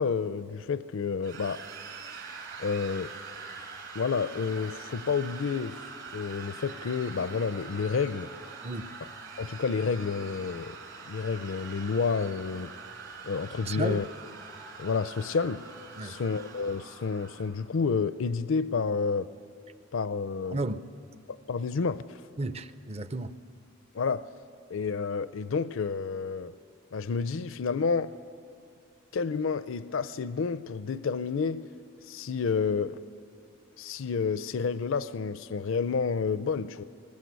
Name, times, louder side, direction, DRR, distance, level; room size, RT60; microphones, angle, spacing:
voice 1, 0.0-1.6 2.6-3.1 3.9-5.8 6.1-8.3 9.4-10.8 11.1-12.7 13.2-14.0 14.8-15.6 16.0-19.3 19.9-20.6 21.5-22.2 23.9-24.2 24.7-26.5 26.9-28.1 29.1-31.6 32.0-33.0 33.8-36.8, left 5 dB, 60° left, 0.5 m, -29 dB
sound 1, 1.2-17.5, right 4 dB, 60° right, 4.3 m, -44 dB
voice 2, 13.6-14.0 16.0-16.2 20.5-20.8 22.4-23.4, right 2 dB, 30° right, 0.6 m, -33 dB
20.5 x 20.5 x 8.1 m
head